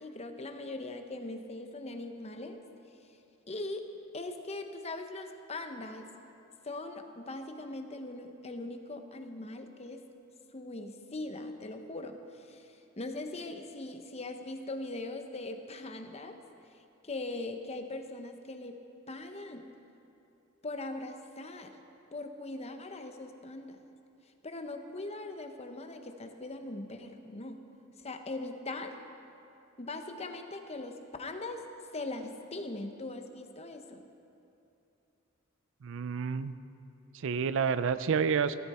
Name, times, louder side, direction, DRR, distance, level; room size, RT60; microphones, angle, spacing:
voice 1, 0.0-2.6 3.5-3.9 4.1-6.1 6.6-10.0 10.5-16.4 17.0-19.7 20.6-21.7 22.1-23.8 24.4-27.6 28.0-29.0 29.8-31.6 31.9-34.0, left 2 dB, 30° left, 6 dB, 0.9 m, -40 dB
voice 2, 35.8-36.5 37.1-38.6, right 6 dB, 65° right, 14 dB, 0.4 m, -29 dB
16.0 x 13.5 x 4.3 m, 2.8 s
head